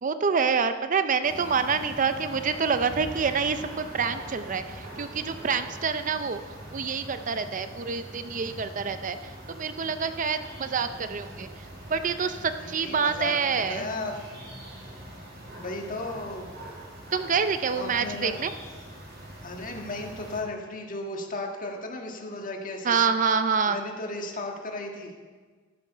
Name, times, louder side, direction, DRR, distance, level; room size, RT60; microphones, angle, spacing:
voice 1, 0.0-6.4 6.7-9.2 9.6-11.5 11.9-13.9 17.1-18.5 22.8-23.8, right 5 dB, 40° right, 10 dB, 0.5 m, -27 dB
sound 1, 1.2-20.4, right 1 dB, 60° right, 4.4 m, -43 dB
voice 2, 12.6-14.1 15.6-16.5 17.7-18.4 19.4-23.0 23.7-25.1, left 2 dB, 45° left, 2 dB, 1.7 m, -35 dB
14.0 x 8.5 x 5.5 m, 1.5 s
head